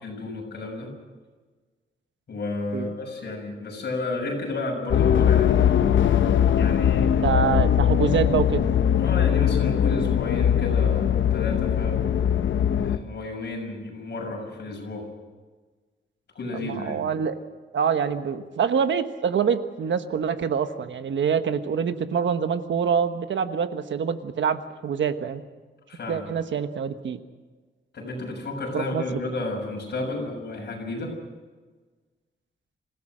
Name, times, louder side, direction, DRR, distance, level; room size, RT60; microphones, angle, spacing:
voice 1, 0.0-0.9 2.3-5.6 6.6-7.3 9.0-12.0 12.8-15.1 16.4-17.0 25.9-26.3 27.9-31.1, left 2 dB, 55° left, 0 dB, 6.9 m, -32 dB
sound 1, 4.9-13.0, left 9 dB, 75° left, 0.9 m, -21 dB
voice 2, 7.2-8.6 16.5-17.4 17.7-25.4 26.1-27.2 28.7-29.2, right 7 dB, 70° right, 9 dB, 1.3 m, -25 dB
26.5 x 16.5 x 6.3 m, 1.4 s
wide cardioid pair, 170°, 20 cm